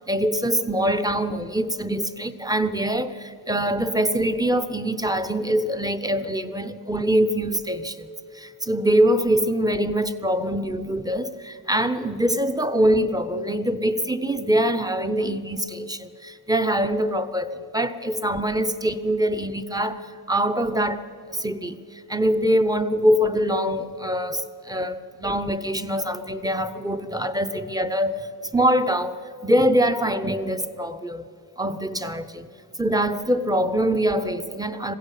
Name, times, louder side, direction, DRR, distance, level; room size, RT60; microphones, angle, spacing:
voice 1, 0.1-8.1 8.3-31.3 31.6-32.5 32.8-35.0, equal, 10° right, 0.7 m, -24 dB
21.0 x 16.0 x 8.4 m
wide cardioid pair, 145°, 39 cm